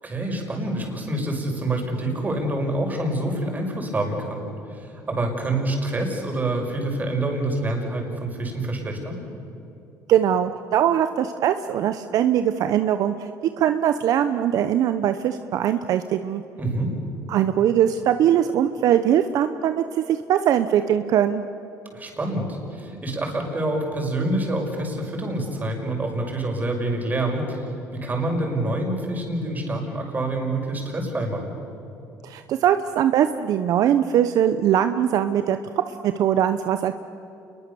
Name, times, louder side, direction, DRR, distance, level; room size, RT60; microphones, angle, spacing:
voice 1, 0.0-9.2 16.6-16.9 21.9-27.7 27.9-31.4, right 1 dB, 25° right, 1 dB, 5.9 m, -27 dB
voice 2, 10.1-13.3 13.6-16.4 17.3-21.4 32.2-35.6 36.0-37.0, right 10 dB, 65° right, 10 dB, 0.9 m, -21 dB
28.0 x 22.0 x 7.0 m, 2.9 s
cardioid pair, 100°, 7 cm